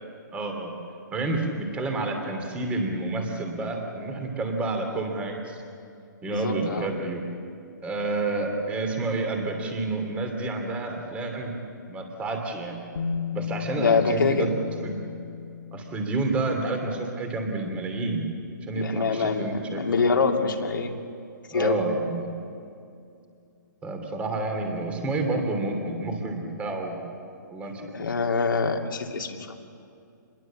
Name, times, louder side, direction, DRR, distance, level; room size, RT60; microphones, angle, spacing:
voice 1, 0.3-0.7 1.1-5.6 6.2-7.2 7.8-11.5 11.9-12.8 13.3-14.9 15.7-18.3 18.7-20.0 21.5-22.3 23.8-27.1 27.5-28.1, right 2 dB, 10° right, 4 dB, 2.9 m, -29 dB
voice 2, 6.3-6.9 13.7-14.5 18.7-20.9 21.5-21.8 27.8-29.4, left 4 dB, 85° left, 3 dB, 2.8 m, -25 dB
Bass guitar, 13.0-16.9 18.0-18.1, left 7 dB, 65° left, 2.4 m, -35 dB
27.5 x 21.0 x 7.4 m, 2.5 s
hypercardioid pair, 160°, 11 cm